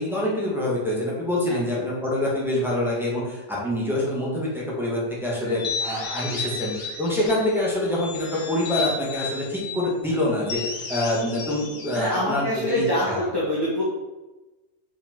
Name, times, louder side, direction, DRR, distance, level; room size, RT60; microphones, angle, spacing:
voice 1, 0.0-13.2, left 1 dB, ahead, -6 dB, 2.0 m, -26 dB
sound 1, 5.4-7.5 7.9-9.8 10.4-12.9, left 4 dB, 85° left, 1.6 m, -33 dB
voice 2, 11.9-13.8, left 1 dB, 20° left, -8 dB, 1.3 m, -25 dB
5.2 x 5.2 x 4.6 m, 1.1 s
omnidirectional pair, 1.4 m